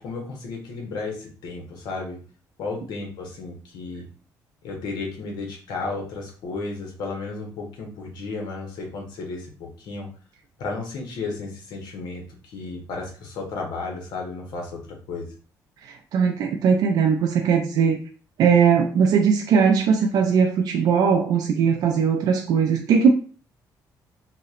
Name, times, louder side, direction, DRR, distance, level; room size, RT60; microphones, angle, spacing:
voice 1, 0.0-2.2 2.6-4.0 4.6-10.1 10.6-15.3, left 3 dB, 80° left, 1 dB, 0.8 m, -33 dB
voice 2, 15.9-18.0 18.4-23.1, right 6 dB, 65° right, 3 dB, 0.3 m, -19 dB
2.8 x 2.1 x 2.4 m, 0.40 s
cardioid pair, 140°, 7 cm